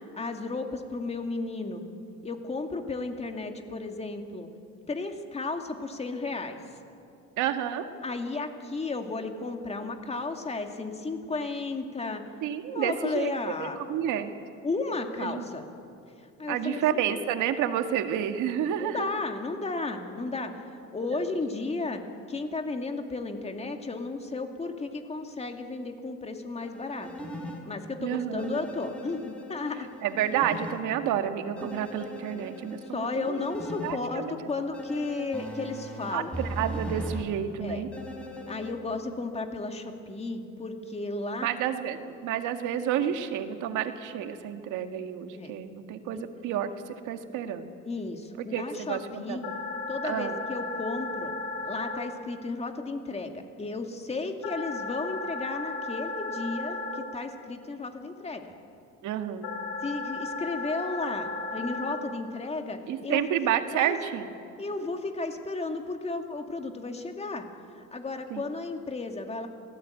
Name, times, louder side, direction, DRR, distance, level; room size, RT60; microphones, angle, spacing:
voice 1, 0.1-1.8 2.2-4.5 4.9-6.6 8.0-12.2 12.7-13.8 14.6-15.7 16.4-16.8 17.1-17.2 18.8-20.5 20.9-22.0 22.3-27.3 27.7-29.9 32.3-32.4 32.9-36.3 37.6-37.8 38.5-41.5 43.0-43.1 45.4-45.5 46.1-46.2 47.8-49.5 49.9-51.3 51.6-58.5 59.8-63.3 63.7-63.9 64.6-67.5 67.9-69.5, left 3 dB, 20° left, 5 dB, 2.3 m, -34 dB
voice 2, 7.4-7.9 12.4-13.3 13.6-14.3 15.2-15.4 16.5-19.1 21.1-21.3 28.0-28.5 30.0-33.4 33.8-34.4 36.1-37.9 41.4-46.7 47.1-47.7 48.5-49.4 50.0-50.4 59.0-59.6 62.9-64.3 68.3-68.4, right 10 dB, 75° right, 7 dB, 1.9 m, -30 dB
sound 1, 26.6-27.6 28.4-30.8 31.6-33.9 34.7-37.2 37.9-38.7, equal, 5° left, 4.2 m, -39 dB
sound 2, 49.4-51.9 54.4-56.9 59.4-61.9, left 3 dB, 85° left, 5.6 m, -35 dB
27.5 x 18.5 x 9.2 m, 2.5 s
cardioid pair, 135°, 31 cm